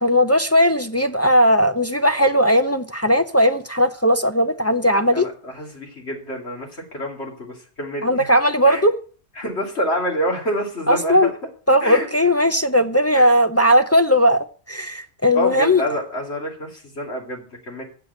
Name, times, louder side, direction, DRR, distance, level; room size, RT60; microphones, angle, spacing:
voice 1, 0.0-5.3 8.0-8.9 10.9-11.3 11.7-15.8, equal, 25° left, 0.3 m, -17 dB
voice 2, 5.1-8.3 8.7-8.8 9.4-11.3 11.8-12.1 13.1-13.3 15.3-17.8, equal, 80° left, 3.0 m, -27 dB
8.0 x 6.8 x 8.0 m
omnidirectional pair, 1.1 m